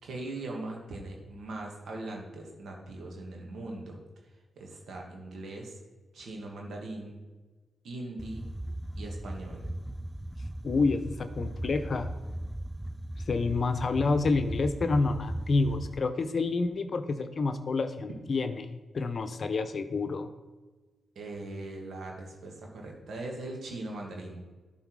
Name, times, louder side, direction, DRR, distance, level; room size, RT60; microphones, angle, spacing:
voice 1, 0.0-4.0 4.6-5.8 6.1-7.2 7.8-8.5 9.0-9.7 21.2-24.4, right 2 dB, 70° right, 0 dB, 2.0 m, -40 dB
sound 1, 8.2-16.0, right 1 dB, 5° right, 0.3 m, -38 dB
voice 2, 10.6-12.1 13.3-20.3, left 3 dB, 55° left, 9 dB, 0.7 m, -28 dB
11.5 x 4.1 x 4.8 m, 1.3 s
supercardioid pair, 45°, 0 cm